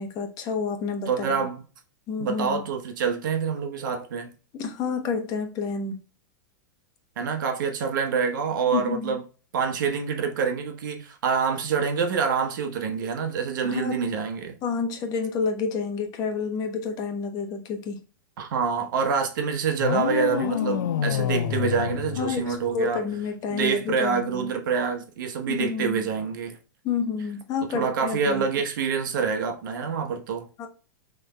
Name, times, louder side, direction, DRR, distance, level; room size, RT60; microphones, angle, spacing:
voice 1, 0.0-1.4 2.1-2.7 4.5-6.0 8.7-9.2 13.6-14.0 14.6-18.0 22.2-24.5 25.5-26.1 26.8-28.4 30.6-30.7, left 5 dB, 35° left, 1.0 m, -29 dB
voice 2, 1.1-1.6 2.2-4.3 7.2-9.2 9.5-14.5 18.4-23.0 23.5-26.6 27.7-30.5, right 6 dB, 75° right, 1.1 m, -26 dB
sound 1, 19.8-22.9, left 9 dB, 80° left, 0.5 m, -27 dB
6.2 x 3.3 x 2.2 m
supercardioid pair, 135°, 11 cm